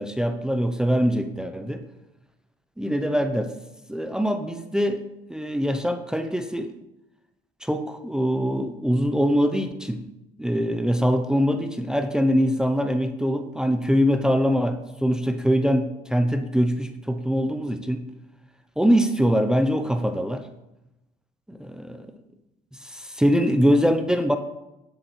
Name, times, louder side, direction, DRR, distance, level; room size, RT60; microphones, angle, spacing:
voice 1, 0.0-1.8 2.8-3.5 3.9-5.0 5.3-6.7 7.6-10.1 10.4-18.1 18.8-20.5 21.5-22.1 22.7-24.4, equal, 5° right, 7 dB, 0.5 m, -23 dB
9.7 x 8.2 x 3.1 m, 0.93 s
cardioid pair, 110°, 17 cm